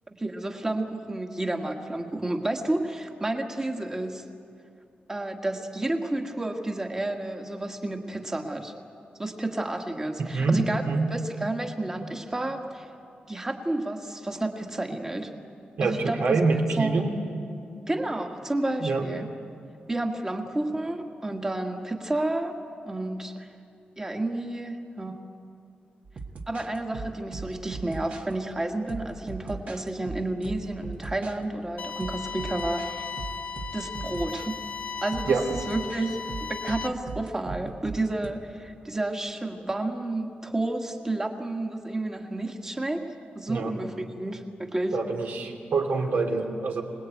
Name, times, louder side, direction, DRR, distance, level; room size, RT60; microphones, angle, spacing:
voice 1, 0.1-4.2 5.1-8.7 9.2-10.8 11.1-12.9 13.3-15.3 15.8-16.4 16.8-17.0 17.9-19.3 19.9-22.6 22.8-23.5 24.0-25.1 26.5-33.1 33.7-34.6 35.0-43.1 43.3-45.0, right 2 dB, 15° right, 4 dB, 1.6 m, -31 dB
voice 2, 10.2-11.1 15.8-17.1 18.8-19.1 35.3-35.5 43.5-43.7 44.9-46.8, right 4 dB, 70° right, 2 dB, 2.8 m, -25 dB
sound 1, 26.0-28.3 28.9-31.4 32.0-32.9 33.2-34.5 35.1-38.3, right 4 dB, 50° right, 1.5 m, -39 dB
sound 2, 31.8-36.9, left 5 dB, 65° left, 1.4 m, -36 dB
26.5 x 19.5 x 9.1 m, 2.6 s
wide cardioid pair, 180°, 3 cm